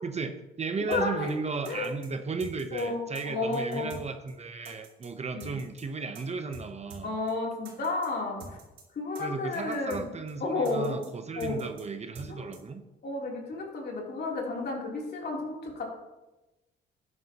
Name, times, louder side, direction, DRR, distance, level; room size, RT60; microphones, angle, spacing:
voice 1, 0.0-7.2 9.2-12.8, right 4 dB, 35° right, 7 dB, 0.9 m, -35 dB
voice 2, 0.9-1.4 1.7-1.9 2.7-3.9 5.3-5.5 7.0-8.6 8.9-10.1 10.4-11.0 11.4-11.6 12.3-12.5 13.0-15.9, left 3 dB, 55° left, -2 dB, 3.3 m, -32 dB
sound 1, 0.9-1.0 1.3-1.4 1.6-2.1 2.4-2.8 3.1-3.2 3.5-4.0 4.3-4.4 4.6-5.1 5.4-5.8 6.1-6.2 6.5-6.6 6.9-7.0 7.3-7.4 7.6-8.1 8.4-8.8 9.1-9.2 9.5-10.0 10.3-10.4 10.6-11.1 11.4-11.8 12.1-12.3 12.5-12.6, right 3 dB, 90° right, 3.4 m, -46 dB
13.0 x 9.7 x 3.0 m, 1.0 s
cardioid pair, 90°, 20 cm